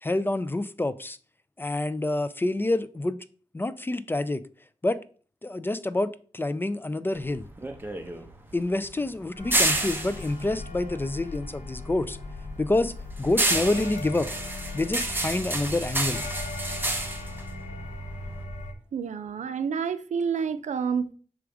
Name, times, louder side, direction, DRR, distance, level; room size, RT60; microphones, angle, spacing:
voice 1, 0.0-1.2 1.6-3.2 3.5-4.4 4.8-5.0 5.4-7.4 8.5-12.2 12.6-12.9 13.2-14.3 14.7-16.2, left 2 dB, 15° left, 0.3 m, -27 dB
sound 1, 7.1-11.7 12.0-18.4, right 2 dB, 15° right, 0.9 m, -30 dB
sound 2, 9.3-18.7, left 2 dB, 90° left, 1.0 m, -38 dB
voice 2, 18.9-21.1, right 6 dB, 75° right, 0.5 m, -29 dB
6.0 x 4.8 x 3.5 m
wide cardioid pair, 115°, 12 cm